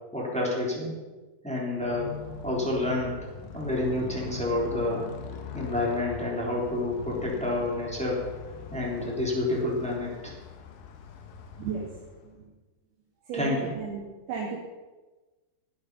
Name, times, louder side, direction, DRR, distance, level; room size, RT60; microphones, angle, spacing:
voice 1, 0.1-0.9 1.4-2.1 2.4-3.1 3.5-5.0 5.5-8.2 8.7-10.3 13.3-13.7, left 2 dB, ahead, -4 dB, 3.1 m, -29 dB
Motorcycle, 1.7-12.4, left 6 dB, 65° left, 2.7 m, -41 dB
voice 2, 11.6-12.0 12.2-12.5 13.3-14.6, right 5 dB, 70° right, -5 dB, 4.3 m, -34 dB
17.0 x 9.9 x 5.6 m, 1.2 s
omnidirectional pair, 4.6 m